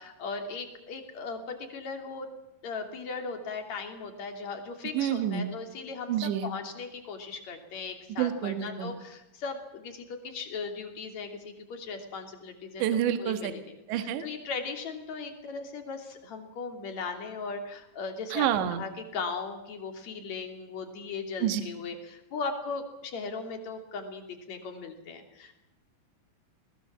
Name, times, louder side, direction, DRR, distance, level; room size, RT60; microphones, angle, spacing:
voice 1, 0.0-2.3 2.6-6.1 6.4-12.8 13.2-18.5 18.7-25.5, left 4 dB, 40° left, 5 dB, 3.5 m, -38 dB
voice 2, 4.9-5.5 6.1-6.5 8.2-8.9 12.8-13.5 13.9-14.3 18.3-18.8 21.4-21.6, right 10 dB, 65° right, 9 dB, 3.7 m, -28 dB
21.5 x 20.0 x 7.4 m, 0.91 s
omnidirectional pair, 5.9 m